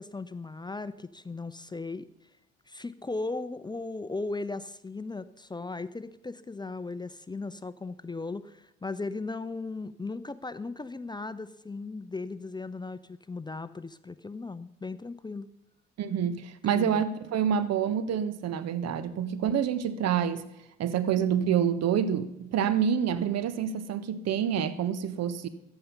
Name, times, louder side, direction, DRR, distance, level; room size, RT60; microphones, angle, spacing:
voice 1, 0.0-2.1 2.7-15.5 16.7-17.0, left 3 dB, 15° left, 0.7 m, -37 dB
voice 2, 16.0-20.5 20.8-25.5, right 8 dB, 55° right, 1.3 m, -27 dB
14.5 x 10.5 x 5.6 m
hypercardioid pair, 55°, 32 cm